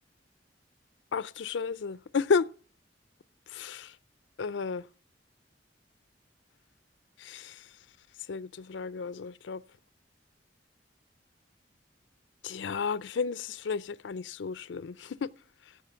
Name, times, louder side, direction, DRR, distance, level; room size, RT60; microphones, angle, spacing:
voice 1, 1.1-2.5 3.5-3.9 4.4-4.9 7.2-7.7 8.3-9.6 12.4-15.3, left 5 dB, 80° left, 0.5 m, -32 dB
15.0 x 7.5 x 5.6 m
head